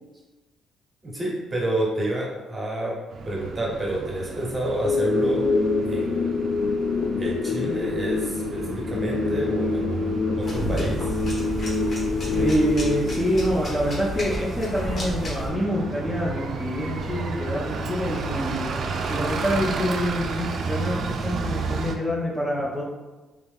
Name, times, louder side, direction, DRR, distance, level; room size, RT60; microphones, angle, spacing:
voice 1, 1.0-3.0 3.2-5.4 5.8-6.4 7.2-11.2, right 1 dB, 20° right, -3 dB, 1.0 m, -29 dB
Bus, 3.1-22.0, right 4 dB, 50° right, 0.4 m, -33 dB
sound 1, 4.8-13.9, left 3 dB, 70° left, 0.3 m, -26 dB
sound 2, 10.4-15.5, equal, 40° left, 1.3 m, -31 dB
voice 2, 12.4-18.6 19.1-22.8, equal, 10° left, -6 dB, 0.6 m, -26 dB
3.5 x 2.8 x 3.5 m, 1.2 s
cardioid pair, 130°, 0 cm